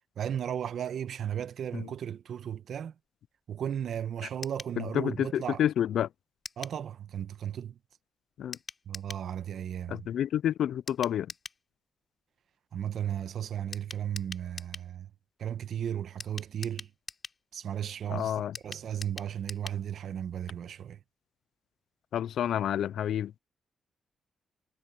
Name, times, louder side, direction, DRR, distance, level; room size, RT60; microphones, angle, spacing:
voice 1, 0.2-2.9 3.5-5.6 6.6-7.7 8.9-10.1 12.7-15.1 15.4-16.9 17.5-21.0, right 9 dB, 70° right, 1.1 m, -35 dB
sound 1, 4.4-4.8 6.4-6.8 8.5-9.3 10.9-11.6 13.7-14.9 16.2-17.4 18.5-19.8 20.1-20.2 20.5-20.6, left 4 dB, 35° left, 7.6 m, -43 dB
voice 2, 4.8-6.1 8.4-8.6 9.9-11.3 18.1-18.5 22.1-23.3, left 10 dB, 80° left, 0.3 m, -29 dB
cardioid pair, 75°, 0 cm